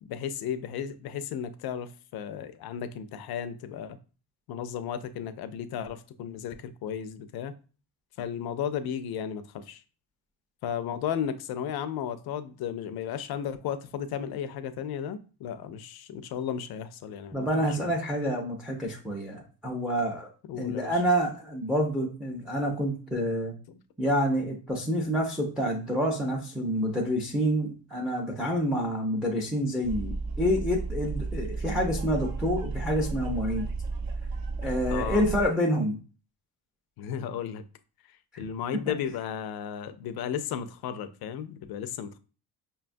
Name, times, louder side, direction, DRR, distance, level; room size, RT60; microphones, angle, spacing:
voice 1, 0.0-4.0 4.5-7.5 8.2-9.8 10.6-17.9 20.5-21.0 23.7-23.8 34.9-35.2 37.0-37.6 38.4-42.2, left 8 dB, 60° left, 0.5 m, -34 dB
voice 2, 17.3-20.3 20.6-23.5 24.0-33.7 34.6-36.0, equal, ahead, 0.4 m, -28 dB
sound 1, 29.8-35.5, right 3 dB, 55° right, 0.7 m, -33 dB
5.5 x 2.3 x 2.5 m
cardioid pair, 140°, 43 cm